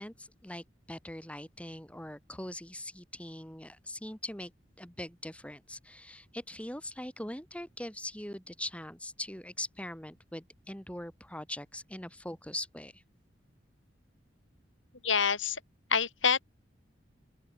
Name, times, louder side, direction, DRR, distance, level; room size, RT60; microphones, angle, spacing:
voice 1, 0.0-4.5 4.8-13.0, left 1 dB, 5° left, 6.2 m, -42 dB
voice 2, 15.0-15.6 15.9-16.4, left 6 dB, 85° left, 5.6 m, -26 dB
open air
head